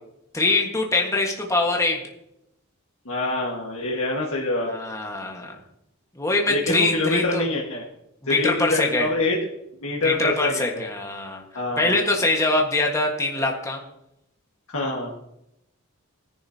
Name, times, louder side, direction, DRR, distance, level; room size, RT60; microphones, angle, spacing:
voice 1, 0.3-2.0 4.7-5.6 6.2-7.4 8.2-9.1 10.0-11.4 11.8-13.8, left 2 dB, 15° left, 0 dB, 1.5 m, -23 dB
voice 2, 3.1-4.7 6.5-7.9 8.3-9.4 9.8-10.9 11.5-12.0 14.7-15.1, left 2 dB, 80° left, -2 dB, 1.7 m, -25 dB
17.0 x 10.5 x 2.9 m, 0.83 s
head